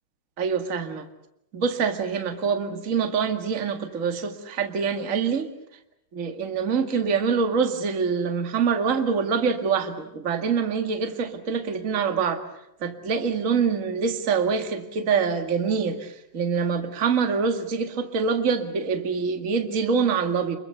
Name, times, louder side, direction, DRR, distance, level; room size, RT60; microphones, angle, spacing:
voice 1, 0.4-1.1 1.5-5.5 6.1-12.4 12.8-20.6, right 5 dB, 30° right, 7 dB, 1.8 m, -25 dB
29.0 x 23.0 x 7.0 m, 0.83 s
omnidirectional pair, 3.7 m